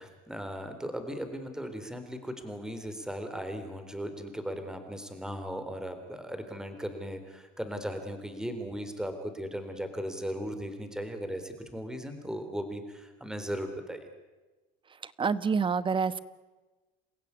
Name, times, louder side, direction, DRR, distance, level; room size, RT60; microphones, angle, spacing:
voice 1, 0.0-14.1, equal, 5° right, 7 dB, 3.7 m, -37 dB
voice 2, 15.0-16.2, right 5 dB, 25° right, 16 dB, 1.1 m, -27 dB
29.0 x 16.0 x 9.7 m, 1.2 s
cardioid pair, 115°, 20 cm